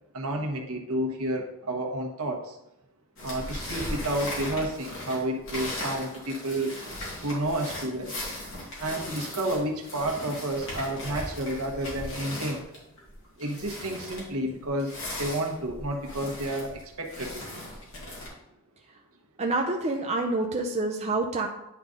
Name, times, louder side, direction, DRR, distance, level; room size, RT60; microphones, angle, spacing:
voice 1, 0.1-2.6 3.2-6.8 7.2-8.1 8.8-12.6 13.4-17.4, right 1 dB, 70° right, 2 dB, 1.2 m, -30 dB
sound 1, 3.2-18.3, left 1 dB, 65° left, 2.6 m, -38 dB
voice 2, 19.4-21.5, right 2 dB, 30° right, 2 dB, 0.5 m, -27 dB
9.9 x 3.9 x 3.7 m, 0.88 s
head